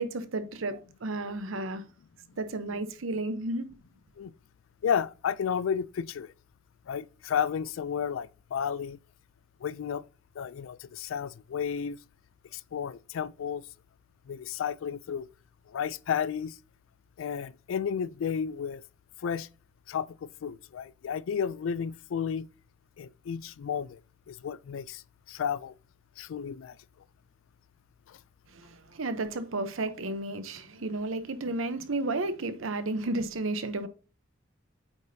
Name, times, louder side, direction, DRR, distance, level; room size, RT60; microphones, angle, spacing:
voice 1, 0.0-1.8 2.4-3.7 28.5-33.9, right 2 dB, 90° right, 0.8 m, -32 dB
voice 2, 4.8-6.3 6.9-9.0 9.6-10.0 10.4-12.0 12.5-13.6 14.3-15.3 15.7-16.6 17.2-18.8 19.2-19.5 19.9-22.5 23.0-24.0 24.3-25.0 25.3-25.7 26.2-26.8 28.1-28.2, left 7 dB, 80° left, 0.3 m, -32 dB
8.2 x 5.0 x 2.7 m
head